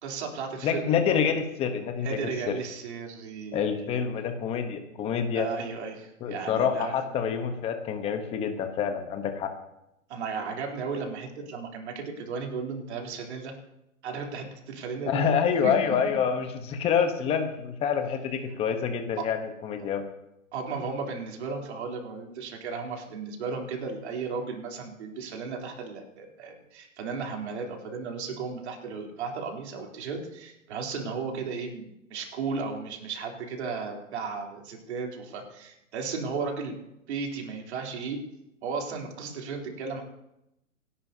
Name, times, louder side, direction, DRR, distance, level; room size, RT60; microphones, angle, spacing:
voice 1, 0.0-1.2 2.0-4.0 5.3-6.9 10.1-13.6 14.0-15.3 15.6-16.0 19.2-19.3 20.5-36.8 37.1-38.2 38.6-40.0, right 5 dB, 50° right, 1 dB, 3.4 m, -35 dB
voice 2, 0.6-2.5 3.5-5.5 6.2-9.5 15.0-20.0, left 7 dB, 15° left, 6 dB, 1.0 m, -27 dB
27.5 x 11.0 x 2.8 m, 0.86 s
hypercardioid pair, 140°, 42 cm